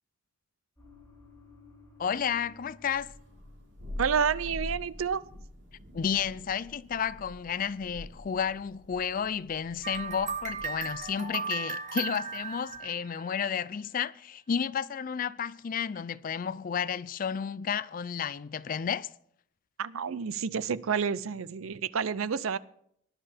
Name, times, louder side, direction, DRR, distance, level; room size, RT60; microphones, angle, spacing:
sound 1, 0.8-4.2 4.5-4.8, left 2 dB, 15° left, 2.9 m, -56 dB
voice 1, 2.0-3.1 5.9-19.1, left 7 dB, 40° left, 0.4 m, -32 dB
Thunder, 2.8-11.2, left 1 dB, 60° right, 3.7 m, -45 dB
voice 2, 4.0-5.2 19.8-22.6, right 6 dB, 85° right, 0.5 m, -29 dB
sound 2, 9.8-13.6, right 5 dB, 35° right, 1.0 m, -36 dB
18.0 x 11.0 x 3.5 m
head